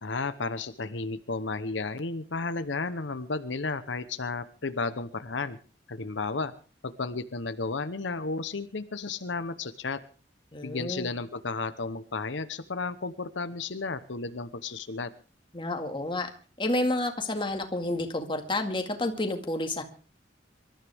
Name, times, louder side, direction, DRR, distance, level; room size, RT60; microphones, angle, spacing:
voice 1, 0.0-5.6 5.9-6.5 6.8-10.0 10.6-15.1, left 3 dB, 85° left, 11 dB, 1.0 m, -33 dB
voice 2, 10.5-11.1 15.5-16.3 16.6-19.8, left 2 dB, 25° left, 5 dB, 2.0 m, -30 dB
26.0 x 13.0 x 3.6 m, 0.37 s
head